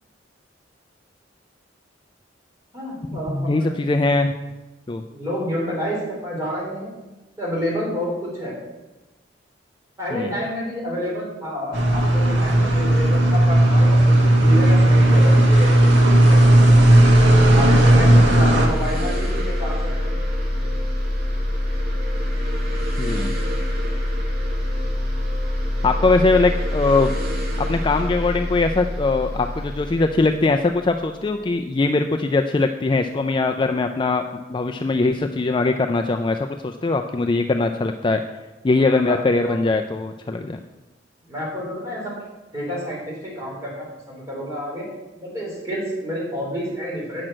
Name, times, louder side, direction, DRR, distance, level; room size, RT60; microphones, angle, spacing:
voice 1, 2.7-3.8 5.1-6.9 7.4-8.6 10.0-15.7 16.1-16.7 17.5-20.0 38.8-39.6 41.3-42.1 42.5-44.9 45.2-47.3, equal, 15° right, -5 dB, 3.8 m, -29 dB
voice 2, 3.3-4.3 4.9-5.0 10.1-10.3 23.0-23.3 25.8-27.1 27.6-34.2 34.5-38.2 38.6-40.6, left 3 dB, 25° left, 5 dB, 0.4 m, -21 dB
sound 1, 11.7-18.7, right 1 dB, 90° right, 1.5 m, -14 dB
sound 2, 15.8-31.3, left 1 dB, 55° right, 2.1 m, -25 dB
8.8 x 6.2 x 6.2 m, 1.1 s
head